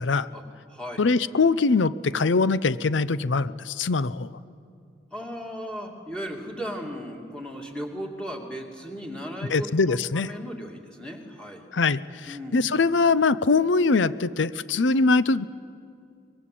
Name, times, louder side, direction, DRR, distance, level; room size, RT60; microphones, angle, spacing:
voice 1, 0.3-1.0 5.1-11.7 12.3-12.6, equal, 5° left, 1 dB, 2.5 m, -36 dB
voice 2, 1.0-4.3 9.5-10.3 11.7-15.4, left 4 dB, 80° left, 16 dB, 0.6 m, -22 dB
24.0 x 21.0 x 8.5 m, 2.4 s
head